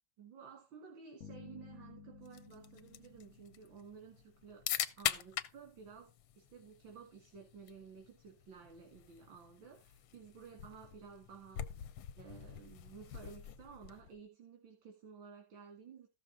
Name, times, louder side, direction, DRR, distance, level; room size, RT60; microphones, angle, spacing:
voice 1, 0.2-4.6 5.0-16.1, right 6 dB, 85° right, 2.5 m, -54 dB
sound 1, 1.2-4.6, left 5 dB, 50° left, 2.5 m, -55 dB
sound 2, 2.3-14.2, left 11 dB, 85° left, 1.4 m, -44 dB
14.0 x 6.4 x 3.7 m
omnidirectional pair, 2.1 m